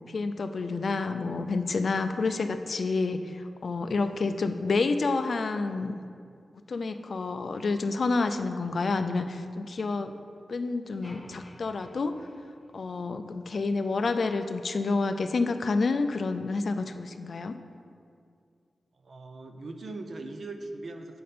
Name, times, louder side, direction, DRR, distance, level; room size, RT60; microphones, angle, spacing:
voice 1, 0.1-6.0 6.7-10.1 10.5-12.1 12.7-17.6, left 3 dB, 55° left, 9 dB, 0.3 m, -29 dB
sound 1, 11.0-13.3, left 1 dB, 15° left, 0.6 m, -52 dB
voice 2, 19.0-21.2, right 2 dB, 55° right, 6 dB, 0.5 m, -40 dB
7.6 x 4.2 x 5.1 m, 2.2 s
wide cardioid pair, 140°, 0 cm